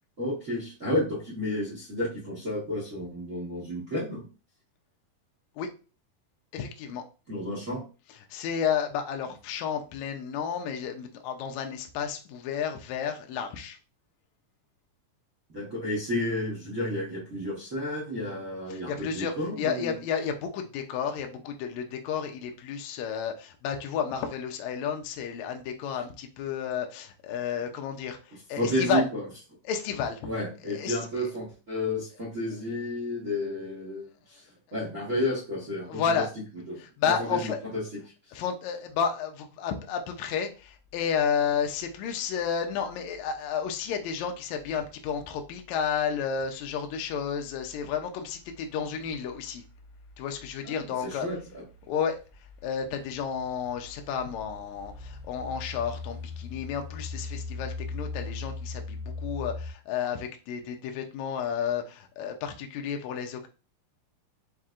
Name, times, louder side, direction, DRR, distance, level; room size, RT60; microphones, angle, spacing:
voice 1, 0.2-4.2 7.3-7.8 15.5-19.9 28.6-29.2 30.2-34.4 34.7-36.0 36.7-36.8 37.2-37.8 50.6-51.4, left 1 dB, 75° right, -4 dB, 0.7 m, -31 dB
voice 2, 6.5-7.0 8.3-13.8 18.7-29.1 29.6-30.3 30.6-31.3 35.9-36.3 36.8-37.6 38.3-49.6 50.2-51.3 51.9-52.2 52.6-63.5, left 7 dB, 85° left, 4 dB, 1.6 m, -31 dB
sound 1, 40.6-59.7, left 3 dB, 65° left, 1.7 m, -42 dB
5.8 x 2.7 x 2.4 m, 0.33 s
omnidirectional pair, 4.0 m